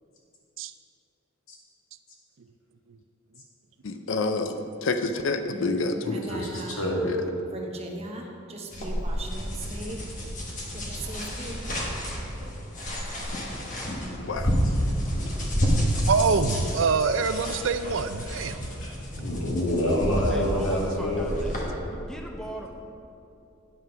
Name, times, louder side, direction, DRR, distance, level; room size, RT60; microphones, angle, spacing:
voice 1, 3.8-6.2 7.0-7.3 14.2-14.5, left 3 dB, 70° left, 8 dB, 0.5 m, -28 dB
voice 2, 5.5-7.0 7.5-10.1 10.7-11.6, right 1 dB, 30° right, 1 dB, 1.0 m, -38 dB
voice 3, 6.3-7.0 10.9-11.0 17.4-17.6 18.4-18.5 18.8-21.7, equal, 90° left, -3 dB, 2.1 m, -28 dB
sound 1, 8.7-21.6, equal, 40° left, 1.3 m, -30 dB
voice 4, 16.1-18.6, right 5 dB, 70° right, 11 dB, 0.4 m, -25 dB
voice 5, 20.3-21.6 22.0-22.7, equal, 5° left, 1 dB, 0.6 m, -38 dB
9.4 x 5.8 x 5.8 m, 2.6 s
head